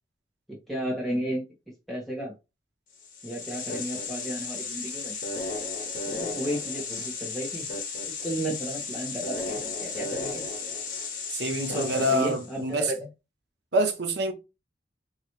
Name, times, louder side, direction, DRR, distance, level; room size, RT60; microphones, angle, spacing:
voice 1, 0.5-1.4 1.9-2.3 3.2-5.2 6.0-7.7 8.1-10.4 11.7-13.1, right 1 dB, ahead, 1.4 m, -33 dB
sound 1, 3.0-12.6, left 4 dB, 50° left, 1.2 m, -34 dB
voice 2, 11.3-12.9 13.7-14.3, right 1 dB, 75° right, 0.8 m, -26 dB
3.1 x 2.8 x 3.1 m
head